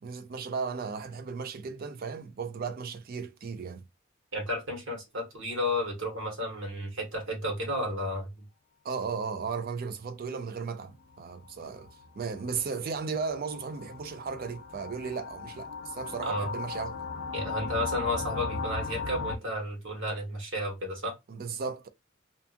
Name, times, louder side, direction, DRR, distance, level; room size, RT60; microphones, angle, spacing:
voice 1, 0.0-3.9 8.8-17.0 21.3-21.9, right 5 dB, 45° right, 0.4 m, -35 dB
voice 2, 4.3-8.4 16.2-16.5 17.3-21.1, left 1 dB, 65° right, 1.4 m, -32 dB
sound 1, 10.9-19.4, left 4 dB, 60° left, 0.4 m, -37 dB
2.5 x 2.5 x 2.5 m
head